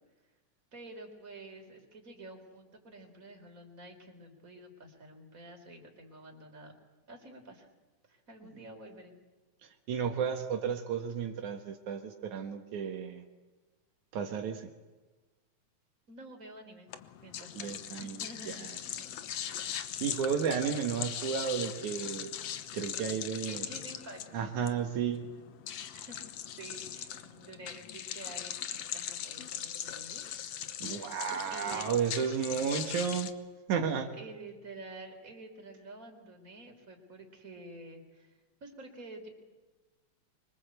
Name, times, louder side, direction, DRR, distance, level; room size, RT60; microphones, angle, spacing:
voice 1, 0.7-6.7 7.1-7.7 8.1-9.1 16.1-16.9 17.2-17.7 18.0-18.6 23.4-24.4 25.9-26.2 26.5-30.2 31.5-31.9 34.2-38.3 38.6-39.3, right 2 dB, 25° right, 3 dB, 4.4 m, -49 dB
voice 2, 9.6-13.2 14.1-14.7 17.5-18.7 19.7-22.3 22.7-23.7 24.3-25.3 30.8-33.3 33.7-34.2, right 7 dB, 80° right, 5 dB, 2.9 m, -33 dB
sound 1, 16.9-33.3, left 10 dB, 65° left, 2.1 m, -40 dB
26.0 x 24.5 x 8.1 m, 1.2 s
omnidirectional pair, 3.4 m